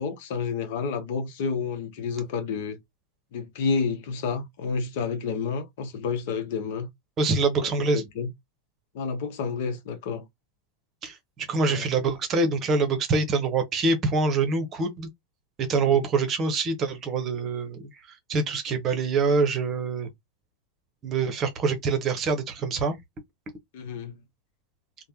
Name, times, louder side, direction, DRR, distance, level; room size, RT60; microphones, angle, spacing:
voice 1, 0.0-2.8 3.3-6.9 7.6-8.3 8.9-10.2 11.5-11.9 15.8-16.1 23.7-24.2, left 5 dB, 50° left, 0.8 m, -30 dB
voice 2, 7.2-8.0 11.0-15.1 15.6-17.8 18.1-20.1 21.0-23.0, right 4 dB, 30° right, 0.9 m, -25 dB
3.3 x 2.1 x 2.8 m
figure-of-eight pair, 90°, 0 cm